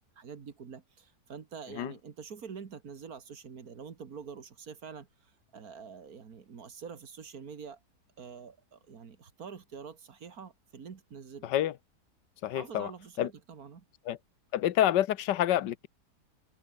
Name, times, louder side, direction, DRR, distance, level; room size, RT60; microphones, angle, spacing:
voice 1, 0.2-7.8 8.2-11.5 12.5-13.9, right 6 dB, 60° right, 2.2 m, -46 dB
voice 2, 11.4-11.7 12.4-12.9 13.2-13.3 14.1-14.2 14.5-15.9, left 12 dB, 85° left, 1.5 m, -27 dB
omnidirectional pair, 1.8 m